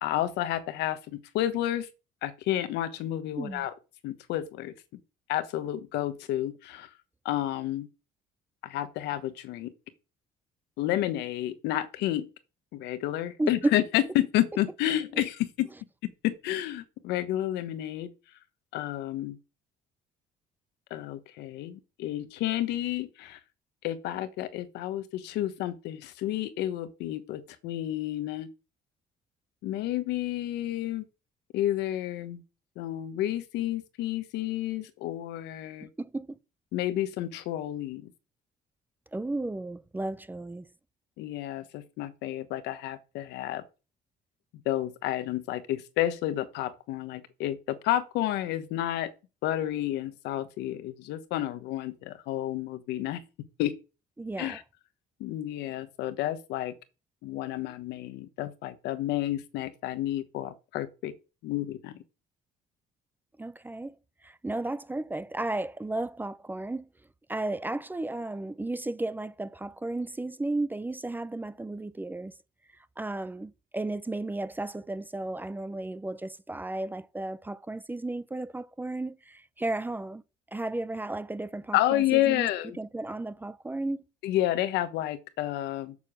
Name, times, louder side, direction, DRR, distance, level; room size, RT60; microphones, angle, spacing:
voice 1, 0.0-1.9 2.2-3.7 4.0-4.7 5.3-6.9 7.2-7.9 8.6-9.7 10.8-12.3 12.7-15.7 16.2-18.1 18.7-19.4 20.9-23.4 23.8-28.5 29.6-31.1 31.5-32.4 32.8-35.9 36.7-38.1 41.2-43.6 44.6-49.1 49.4-53.2 53.6-53.7 54.4-54.6 55.2-56.7 57.2-61.1 61.4-61.9 81.7-82.8 84.2-86.0, left 13 dB, 85° left, 1.1 m, -30 dB
voice 2, 13.4-13.7 35.8-36.4 39.1-40.6 54.2-54.6 63.4-64.0 64.2-66.9 67.3-72.3 73.0-80.2 80.5-82.5 82.8-84.0, right 2 dB, 10° right, 0.5 m, -34 dB
7.3 x 6.9 x 6.1 m
cardioid pair, 110°, 17 cm